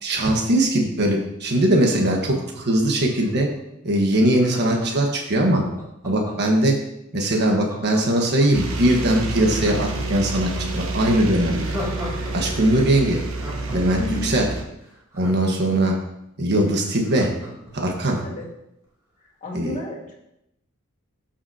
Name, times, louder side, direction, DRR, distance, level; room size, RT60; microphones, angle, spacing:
voice 1, 0.0-3.5 3.8-5.6 6.0-6.7 7.1-11.7 12.3-13.2 13.7-14.5 15.2-16.0 16.4-17.3 17.7-18.2 19.5-19.7, right 1 dB, 55° right, 1 dB, 1.4 m, -20 dB
Laughter, 1.9-3.5 4.4-6.6 7.3-8.7 9.1-9.2 9.5-12.3 12.6-12.7 13.1-16.0 16.4-16.5 16.7-18.5 18.8-18.9, equal, 15° right, 2.6 m, -37 dB
sound 1, 8.5-14.6, right 2 dB, 70° right, 1.2 m, -29 dB
voice 2, 14.0-14.3 18.2-18.5 19.4-20.1, left 2 dB, 35° left, -2 dB, 1.9 m, -31 dB
13.0 x 5.8 x 2.8 m, 0.82 s
head